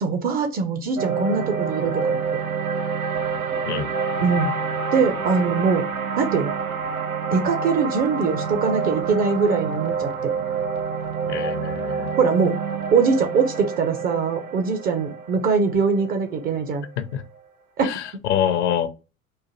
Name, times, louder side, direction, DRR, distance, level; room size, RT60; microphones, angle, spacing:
voice 1, 0.0-2.2 4.2-4.5 4.9-5.9 6.2-6.5 7.3-10.3 12.2-12.6 12.9-16.9 17.8-17.9, right 5 dB, 25° right, 0.4 m, -22 dB
sound 1, 1.0-17.2, right 5 dB, 80° right, 0.7 m, -27 dB
voice 2, 11.3-12.1 17.0-17.2 17.8-18.9, left 9 dB, 55° left, 0.6 m, -25 dB
3.9 x 2.4 x 2.8 m
figure-of-eight pair, 75°, 41 cm